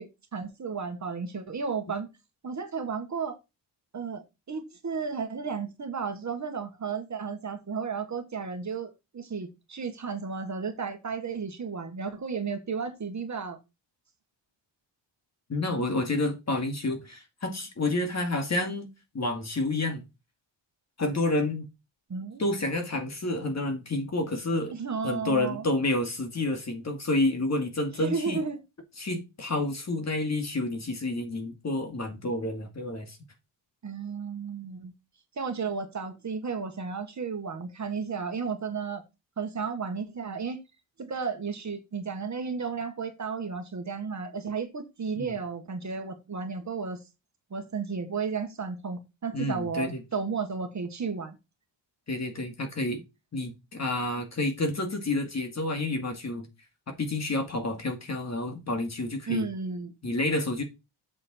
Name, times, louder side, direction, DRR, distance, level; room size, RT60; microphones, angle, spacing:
voice 1, 0.0-2.1 2.4-3.4 3.9-13.6 22.1-22.4 24.7-25.6 28.0-28.6 33.8-34.9 35.4-39.0 39.4-40.6 41.0-47.0 47.5-51.4 59.3-59.9, right 5 dB, 40° right, 1.5 m, -33 dB
voice 2, 15.5-18.9 19.1-20.0 21.0-21.7 22.4-24.7 25.0-28.4 29.0-33.2 45.2-45.3 49.3-50.0 52.1-53.0 53.3-56.5 56.9-59.5 60.0-60.6, left 2 dB, 35° left, 2.2 m, -29 dB
7.8 x 6.3 x 4.4 m
wide cardioid pair, 155°, 45 cm